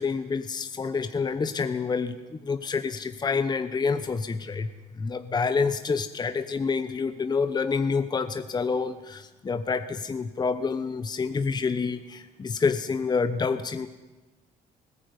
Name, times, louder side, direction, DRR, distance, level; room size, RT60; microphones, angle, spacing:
voice 1, 0.0-4.7 4.9-13.9, left 5 dB, 25° left, 10 dB, 1.0 m, -28 dB
20.5 x 15.0 x 9.7 m, 1.2 s
cardioid pair, 110°, 17 cm